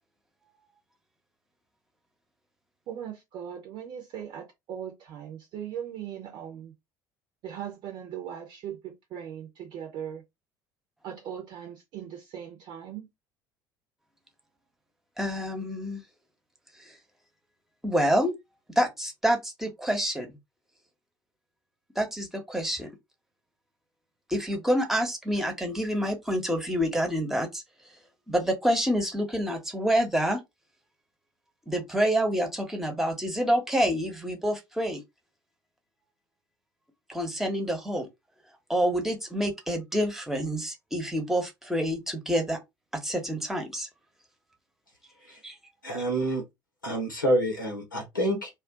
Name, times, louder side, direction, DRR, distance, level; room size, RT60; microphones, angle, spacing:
voice 1, 2.9-6.7 7.4-10.2 11.0-13.1, right 9 dB, 45° right, 0.8 m, -39 dB
voice 2, 15.2-16.0 16.8-16.9 17.8-18.3 18.8-20.4 22.0-22.9 24.3-27.6 28.3-30.4 31.7-35.0 37.1-38.1 38.7-42.6 43.0-43.9 45.4-45.5, equal, 5° right, 1.0 m, -27 dB
voice 3, 45.8-46.4 46.8-48.5, right 1 dB, 85° left, 1.0 m, -27 dB
2.5 x 2.4 x 3.6 m
figure-of-eight pair, 65°, 11 cm